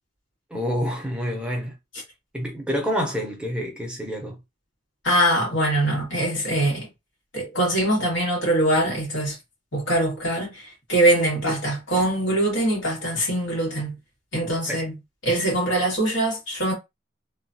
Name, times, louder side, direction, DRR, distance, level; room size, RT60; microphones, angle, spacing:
voice 1, 0.5-1.8 2.3-4.4 14.7-14.9, equal, 5° right, 0.6 m, -28 dB
voice 2, 5.0-6.9 7.3-9.4 9.7-14.0 14.3-14.9 15.2-16.7, right 1 dB, 85° left, 1.7 m, -23 dB
3.0 x 2.3 x 2.6 m
head